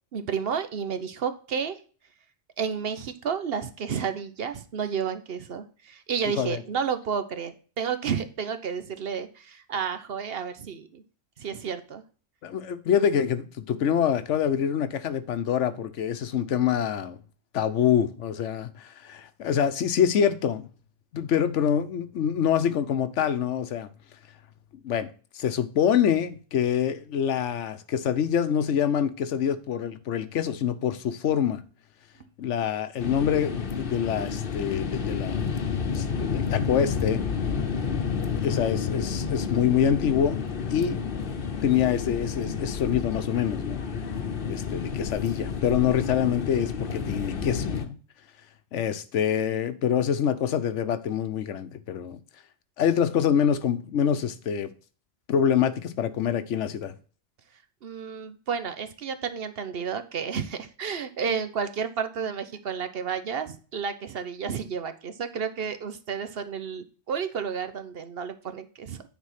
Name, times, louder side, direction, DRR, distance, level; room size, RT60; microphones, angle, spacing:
voice 1, 0.1-1.8 2.6-11.0 11.4-12.0 57.8-69.0, right 6 dB, 60° right, 0.9 m, -31 dB
voice 2, 12.4-17.2 17.5-20.7 21.1-23.9 24.8-31.6 32.4-35.4 35.9-37.2 38.2-40.4 40.7-41.0 41.6-43.8 44.4-48.0 48.7-52.2 52.8-54.7 55.3-56.9, left 8 dB, 80° left, 1.0 m, -25 dB
sound 1, 33.0-47.9, left 6 dB, 50° left, 1.0 m, -30 dB
9.6 x 4.1 x 5.7 m
omnidirectional pair, 1.2 m